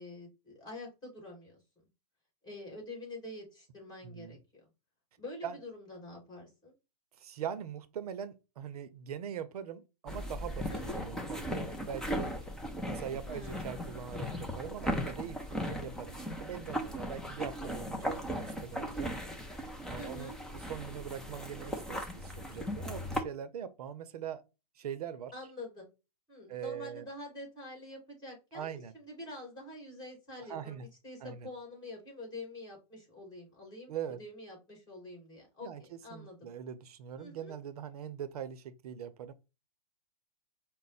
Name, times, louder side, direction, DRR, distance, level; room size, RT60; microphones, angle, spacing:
voice 1, 0.0-1.6 2.4-4.6 5.2-6.7 10.7-11.0 13.2-13.7 15.6-15.9 20.0-20.4 25.3-25.9 26.3-35.7 36.0-36.5 37.2-37.5, left 1 dB, 20° left, 2.4 m, -46 dB
voice 2, 4.0-4.4 5.4-5.6 7.2-10.7 10.9-12.3 12.8-19.2 19.9-24.4 24.8-25.3 26.5-27.1 28.5-28.9 30.5-30.9 31.2-31.5 33.9-34.2 35.6-39.3, right 8 dB, 65° right, 0.6 m, -42 dB
sound 1, 10.1-23.2, equal, 5° left, 0.5 m, -38 dB
5.0 x 2.1 x 4.0 m
hypercardioid pair, 125°, 21 cm